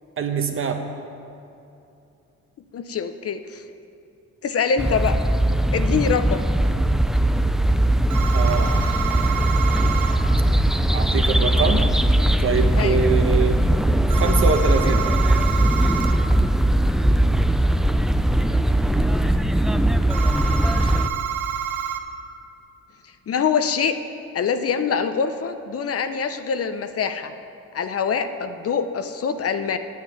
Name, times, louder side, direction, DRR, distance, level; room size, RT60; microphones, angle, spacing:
voice 1, 0.2-0.8 8.3-8.9 10.9-11.9 12.4-13.7 14.1-15.1, right 5 dB, 45° right, 5 dB, 1.3 m, -24 dB
voice 2, 2.7-3.6 4.4-5.2 5.7-6.4 12.7-13.0 23.3-24.0 24.3-27.3 27.7-29.8, left 6 dB, 50° left, 9 dB, 0.8 m, -24 dB
sound 1, 4.8-21.1, right 1 dB, ahead, 0.4 m, -19 dB
sound 2, 8.1-10.2 14.1-16.2 20.1-22.0, right 8 dB, 75° right, 1.0 m, -29 dB
9.3 x 7.8 x 9.2 m, 2.7 s
cardioid pair, 90°, 30 cm